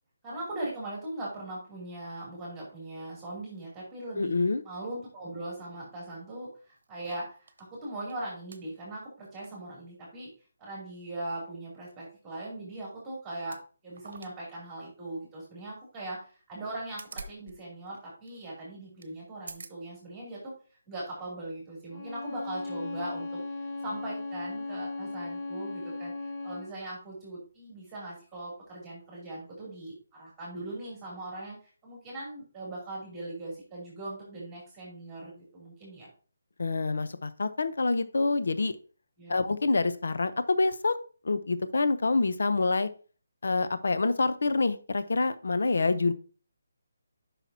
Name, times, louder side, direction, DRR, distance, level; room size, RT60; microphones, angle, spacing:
voice 1, 0.2-4.3 4.6-10.3 10.6-20.5 20.9-36.1 39.2-39.4, right 1 dB, 10° right, -4 dB, 2.8 m, -40 dB
voice 2, 4.2-4.6 36.6-38.7 39.3-41.0 41.2-42.9 43.4-46.1, left 3 dB, 70° left, 11 dB, 0.7 m, -26 dB
sound 1, 6.4-7.7 8.1-8.2 8.5-8.6 9.2-9.5 9.8-9.9 12.6-12.8 13.4-13.6 13.9-14.4 14.7-14.8 16.6-17.5 17.8-17.9 18.3-18.4 19.0-19.1 19.4-19.8 20.4-20.5, right 4 dB, 60° right, 0.9 m, -46 dB
Bowed string instrument, 21.9-26.8, left 3 dB, 25° left, 0.9 m, -37 dB
9.2 x 5.8 x 2.7 m, 0.37 s
hypercardioid pair, 170°, 0 cm